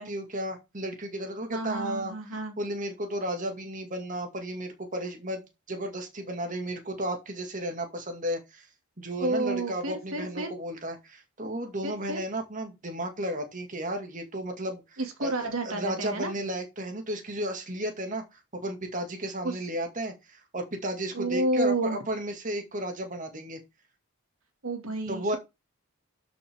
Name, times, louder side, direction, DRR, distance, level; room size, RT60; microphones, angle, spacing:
voice 1, 0.0-2.1 2.6-5.4 5.7-8.7 9.0-15.3 15.6-23.6 25.1-25.4, right 1 dB, 40° right, 2.3 m, -33 dB
voice 2, 1.5-2.6 9.2-10.5 11.8-12.3 15.0-16.3 19.4-19.7 21.1-22.0 24.6-25.4, right 2 dB, 85° right, 2.5 m, -30 dB
12.5 x 6.3 x 3.7 m
head